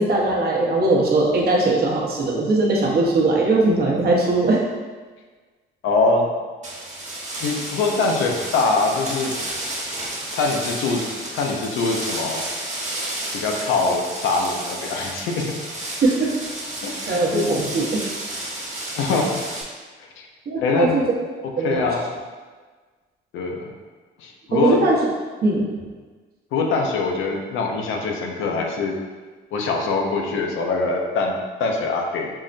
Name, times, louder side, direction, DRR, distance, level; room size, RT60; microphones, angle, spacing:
voice 1, 0.0-4.6 16.0-16.3 17.1-18.0 20.5-21.0 21.4-21.8 24.5-25.0 25.4-25.7, right 2 dB, 50° right, -3 dB, 0.8 m, -20 dB
voice 2, 5.8-6.3 7.4-9.3 10.3-11.1 11.3-12.4 13.3-15.4 16.8-17.7 19.0-19.4 20.6-21.0 21.6-22.1 23.3-23.6 24.2-24.8 26.5-28.9 29.5-32.3, left 3 dB, 85° left, 1 dB, 0.6 m, -23 dB
sound 1, 6.6-19.6, right 1 dB, 35° right, 1.1 m, -31 dB
5.4 x 2.1 x 2.5 m, 1.4 s
cardioid pair, 90°, 20 cm